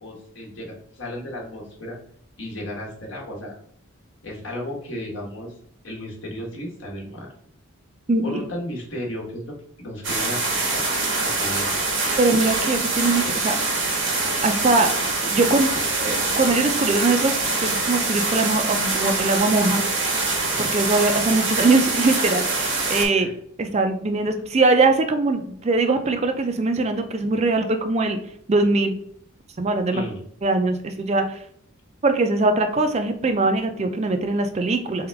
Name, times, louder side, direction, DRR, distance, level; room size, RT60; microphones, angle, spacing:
voice 1, 0.0-2.0 2.4-3.5 4.2-5.5 5.8-7.3 8.2-10.9 11.2-11.9 21.0-21.2 23.1-23.3 29.9-30.2, equal, 60° left, -1 dB, 1.3 m, -34 dB
sound 1, 10.0-23.1, right 3 dB, 55° right, 1.7 m, -24 dB
voice 2, 12.2-13.6 14.4-14.9 15.2-17.3 17.6-19.8 20.6-23.3 23.6-28.2 28.5-29.0 29.6-30.1 30.4-31.4 32.0-35.1, right 3 dB, 30° right, 6 dB, 0.4 m, -21 dB
3.9 x 3.6 x 3.4 m, 0.65 s
head